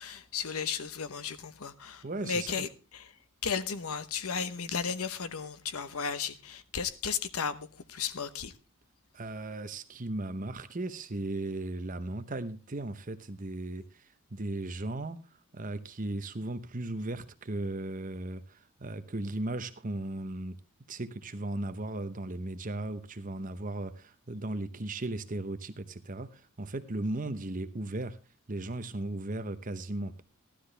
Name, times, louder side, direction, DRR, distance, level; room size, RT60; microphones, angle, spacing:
voice 1, 0.0-3.1 3.4-8.5, left 6 dB, 90° left, 0.9 m, -34 dB
voice 2, 2.0-2.5 9.1-14.0 14.3-15.2 15.5-20.6 20.9-28.2 28.5-30.2, right 2 dB, 40° right, 0.8 m, -36 dB
15.5 x 12.0 x 3.3 m
head